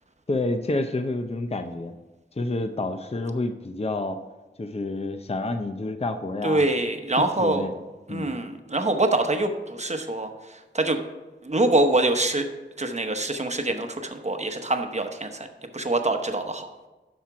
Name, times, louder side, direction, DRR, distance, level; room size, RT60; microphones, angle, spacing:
voice 1, 0.3-2.0 2.4-4.2 4.6-6.7 7.4-7.7 8.1-8.4, left 2 dB, 30° left, 8 dB, 0.5 m, -29 dB
voice 2, 6.4-7.7 8.1-10.3 10.7-11.0 11.4-12.4 12.8-15.5 15.7-16.7, right 2 dB, 35° right, 6 dB, 0.9 m, -24 dB
12.0 x 4.4 x 4.7 m, 1.2 s
wide cardioid pair, 55°, 19 cm